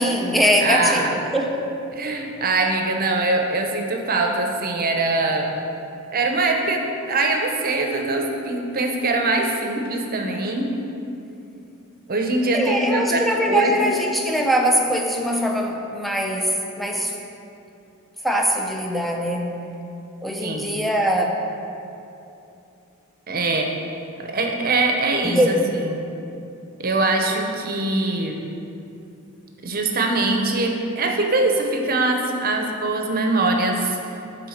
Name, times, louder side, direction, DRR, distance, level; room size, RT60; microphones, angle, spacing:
voice 1, 0.0-1.6 12.5-17.2 18.2-19.5 20.2-21.3 25.2-25.5, equal, ahead, 1 dB, 0.6 m, -22 dB
voice 2, 0.6-1.2 1.9-5.5 6.1-10.7 12.1-13.9 20.4-20.7 23.3-23.7 24.2-26.0 26.8-28.4 29.6-34.0, right 2 dB, 45° right, 3 dB, 0.8 m, -22 dB
9.0 x 3.8 x 6.5 m, 2.8 s
head